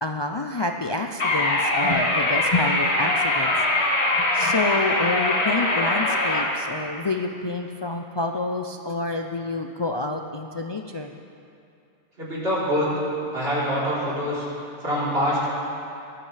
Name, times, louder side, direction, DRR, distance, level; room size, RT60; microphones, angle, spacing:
voice 1, 0.0-3.8 4.1-11.1, left 2 dB, 40° left, 3 dB, 0.3 m, -28 dB
sound 1, 1.2-6.4, left 2 dB, 65° left, 1.7 m, -22 dB
voice 2, 12.2-12.9 13.3-14.4 14.8-15.5, equal, 55° right, -8 dB, 4.1 m, -24 dB
20.0 x 12.5 x 3.4 m, 2.6 s
omnidirectional pair, 1.2 m